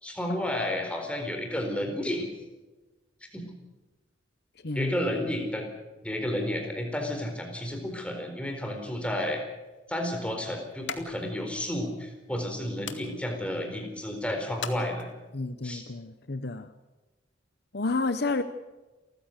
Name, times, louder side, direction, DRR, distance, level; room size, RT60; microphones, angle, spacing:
voice 1, 0.0-2.3 3.3-3.5 4.7-5.6 6.0-9.4 9.9-15.1 15.6-15.8, left 1 dB, 5° left, 3 dB, 4.2 m, -31 dB
sound 1, 9.2-15.5, left 6 dB, 75° left, 1.9 m, -45 dB
voice 2, 15.3-16.7 17.7-18.4, left 3 dB, 60° left, 11 dB, 0.9 m, -30 dB
29.0 x 15.0 x 6.7 m, 1.2 s
head